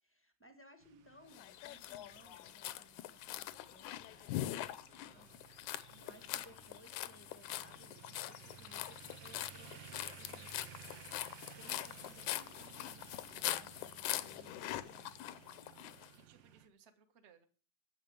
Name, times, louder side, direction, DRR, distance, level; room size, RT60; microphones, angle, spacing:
voice 1, 0.0-10.5 11.6-15.1, equal, 20° left, 0.3 m, -63 dB
sound 1, 0.8-16.7, right 9 dB, 75° right, 1.1 m, -57 dB
sound 2, 1.3-16.1, left 14 dB, 90° left, 2.2 m, -43 dB
voice 2, 5.9-6.4 16.1-17.5, right 5 dB, 40° right, 1.0 m, -65 dB
10.5 x 8.4 x 9.0 m
omnidirectional pair, 3.3 m